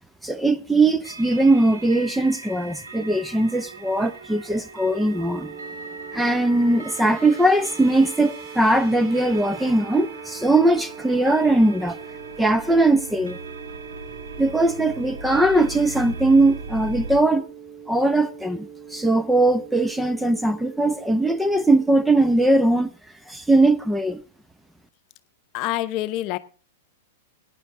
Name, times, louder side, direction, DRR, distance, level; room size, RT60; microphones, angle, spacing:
voice 1, 0.2-5.5 6.1-12.0 12.4-13.4 14.4-17.4 17.9-22.9 23.3-24.2, right 2 dB, 5° right, 0.9 m, -20 dB
sound 1, 1.0-17.2, right 3 dB, 80° right, 2.3 m, -39 dB
sound 2, 4.8-22.5, right 6 dB, 35° right, 3.4 m, -42 dB
voice 2, 25.5-26.4, left 15 dB, 45° left, 0.9 m, -26 dB
18.0 x 10.0 x 3.7 m
hypercardioid pair, 110°, 0 cm